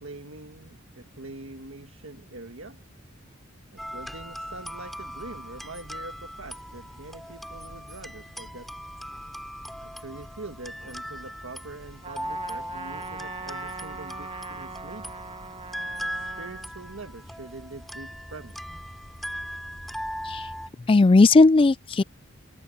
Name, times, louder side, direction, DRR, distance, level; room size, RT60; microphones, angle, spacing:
voice 1, 0.0-2.8 3.7-8.7 9.8-15.1 16.0-18.9, right 2 dB, 70° right, 1.8 m, -44 dB
sound 1, 3.8-20.7, equal, ahead, 2.9 m, -39 dB
Trumpet, 12.0-16.7, right 4 dB, 25° right, 1.9 m, -40 dB
voice 2, 20.9-22.0, left 3 dB, 25° left, 0.3 m, -16 dB
head